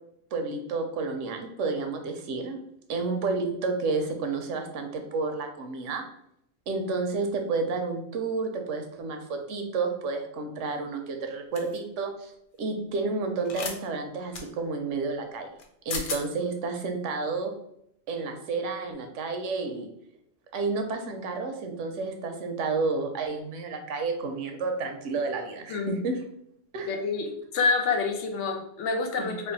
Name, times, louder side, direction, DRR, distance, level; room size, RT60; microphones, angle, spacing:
voice 1, 0.3-2.6 2.9-6.0 6.7-12.3 12.6-15.5 15.8-17.5 18.1-19.9 20.5-26.2 26.7-26.9 29.2-29.3, right 3 dB, 90° right, 5 dB, 1.0 m, -30 dB
sound 1, 11.6-11.8 13.5-13.8 14.3-14.5 15.6-15.7 15.9-16.2, left 4 dB, 55° left, 0.6 m, -33 dB
voice 2, 26.9-29.5, left 4 dB, 80° left, 3 dB, 1.0 m, -27 dB
3.3 x 2.1 x 3.9 m, 0.75 s
omnidirectional pair, 1.2 m